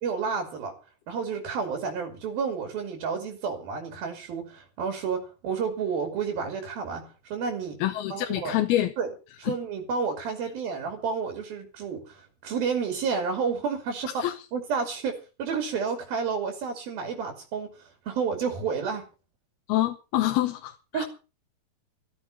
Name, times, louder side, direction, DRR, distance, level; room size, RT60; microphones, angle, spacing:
voice 1, 0.0-0.7 1.1-7.8 8.1-8.6 9.0-9.1 9.4-19.1 20.9-21.1, right 5 dB, 70° right, 4.5 m, -30 dB
voice 2, 7.8-8.9 9.5-9.6 14.2-14.3 19.7-21.0, left 14 dB, 85° left, 2.9 m, -26 dB
14.5 x 14.0 x 5.6 m
omnidirectional pair, 4.4 m